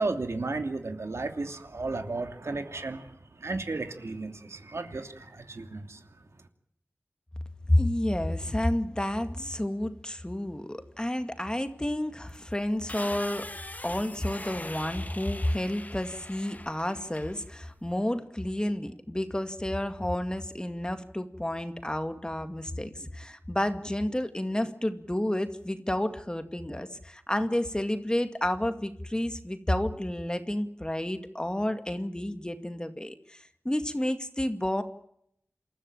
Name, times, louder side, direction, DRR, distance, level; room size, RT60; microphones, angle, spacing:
voice 1, 0.0-6.0, right 3 dB, 75° right, 6 dB, 2.8 m, -34 dB
voice 2, 7.7-13.5 13.8-34.8, left 1 dB, 15° left, 8 dB, 2.1 m, -30 dB
sound 1, 12.3-18.0, left 2 dB, 35° left, 1.8 m, -42 dB
27.5 x 14.0 x 8.9 m, 0.72 s
wide cardioid pair, 60°, 5 cm